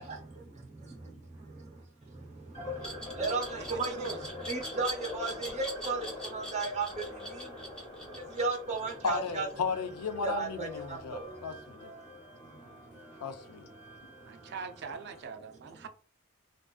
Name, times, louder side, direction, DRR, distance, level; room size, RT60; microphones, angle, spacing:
voice 1, 0.0-9.5 10.2-11.8 12.0-13.2 13.5-14.5 15.5-15.9, right 3 dB, 30° right, 0.8 m, -37 dB
sound 1, 2.5-15.2, left 2 dB, 30° left, 1.0 m, -45 dB
Glass, 2.8-9.7, right 1 dB, 5° left, 0.5 m, -42 dB
voice 2, 3.5-4.2 14.2-15.9, right 4 dB, 50° right, 0.4 m, -42 dB
voice 3, 9.0-11.9 13.2-13.7, left 5 dB, 85° left, 0.4 m, -35 dB
2.4 x 2.4 x 2.3 m
head